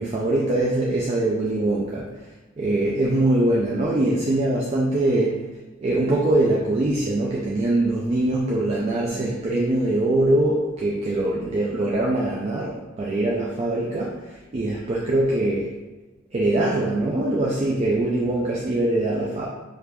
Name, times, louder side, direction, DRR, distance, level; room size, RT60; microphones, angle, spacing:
voice 1, 0.0-2.1 2.6-5.3 5.8-15.7 16.3-19.5, right 1 dB, 35° right, -4 dB, 0.4 m, -23 dB
3.5 x 2.4 x 2.9 m, 1.2 s
head